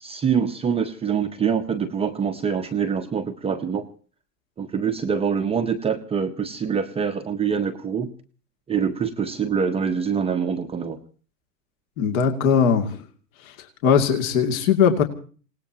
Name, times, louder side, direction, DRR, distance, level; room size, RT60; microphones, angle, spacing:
voice 1, 0.0-3.9 4.6-8.1 8.7-11.0, right 6 dB, 10° right, 5 dB, 0.8 m, -25 dB
voice 2, 12.0-12.9 13.8-15.0, left 7 dB, 55° left, 4 dB, 2.6 m, -19 dB
27.0 x 18.5 x 2.9 m, 0.41 s
hypercardioid pair, 115°, 50 cm